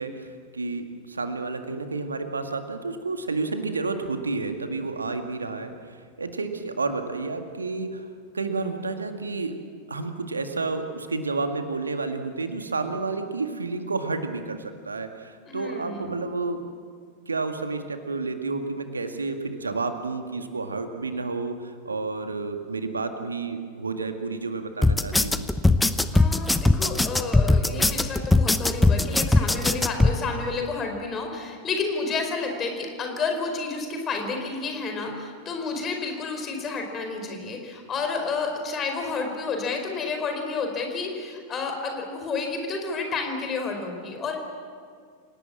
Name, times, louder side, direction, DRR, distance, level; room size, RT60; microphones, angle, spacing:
voice 1, 0.0-8.1 8.3-9.6 9.9-16.6 17.3-25.5, right 3 dB, 75° right, 6 dB, 1.9 m, -30 dB
voice 2, 15.5-16.2 26.1-44.4, left 4 dB, 25° left, 4 dB, 4.7 m, -30 dB
sound 1, 24.8-30.1, left 2 dB, 5° left, 0.9 m, -20 dB
29.0 x 18.0 x 7.5 m, 2.1 s
figure-of-eight pair, 90°, 0 cm